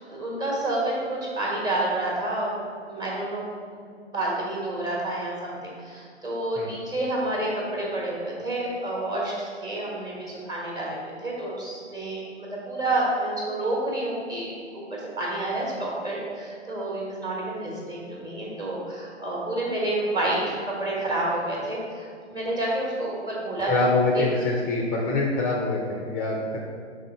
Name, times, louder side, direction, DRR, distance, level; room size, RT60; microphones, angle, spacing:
voice 1, 0.1-2.5 2.8-3.4 3.7-23.8 24.1-24.2, right 2 dB, 10° right, -4 dB, 1.2 m, -29 dB
voice 2, 23.7-26.6, left 3 dB, 25° left, -1 dB, 0.7 m, -25 dB
5.3 x 3.6 x 5.3 m, 2.2 s
figure-of-eight pair, 120°, 35 cm